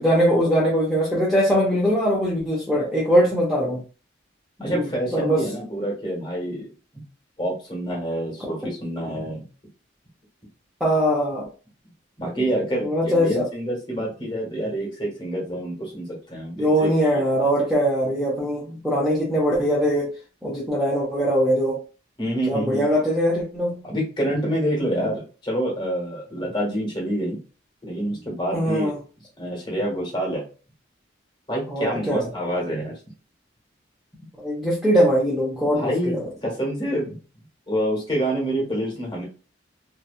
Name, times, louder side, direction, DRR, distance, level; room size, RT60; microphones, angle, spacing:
voice 1, 0.0-3.8 4.6-4.9 5.1-5.4 10.8-11.4 12.8-13.4 16.6-20.1 20.4-21.8 22.5-23.8 24.9-25.1 28.5-29.0 31.7-32.3 34.4-36.3, equal, ahead, -6 dB, 0.6 m, -21 dB
voice 2, 4.6-6.7 7.4-9.4 12.2-17.2 22.2-22.9 23.8-27.4 27.8-28.9 29.4-30.4 31.5-33.0 35.7-36.1 36.4-37.2 37.7-39.2, equal, 25° left, -3 dB, 1.2 m, -27 dB
2.7 x 2.2 x 2.4 m, 0.36 s
head